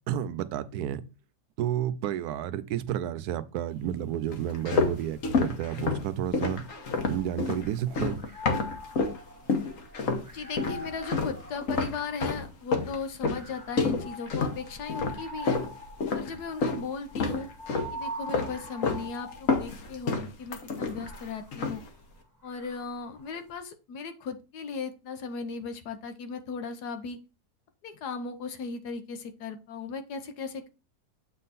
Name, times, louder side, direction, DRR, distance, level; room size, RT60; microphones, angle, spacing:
voice 1, 0.1-1.0 1.6-6.6 7.1-8.2, right 11 dB, 75° right, 1.1 m, -31 dB
sound 1, 4.3-9.2 9.5-10.3 10.6-16.8 17.1-18.0 18.3-19.1 19.3-21.2 21.5-21.9, left 4 dB, 55° left, 1.3 m, -29 dB
sound 2, 6.6-7.8 8.1-12.5 13.2-19.9 20.7-23.3, equal, 10° right, 1.6 m, -44 dB
voice 2, 10.3-15.6 16.1-17.5 17.9-21.8 22.4-27.2 27.8-30.7, left 5 dB, 75° left, 1.3 m, -37 dB
7.7 x 3.7 x 4.1 m
omnidirectional pair, 1.8 m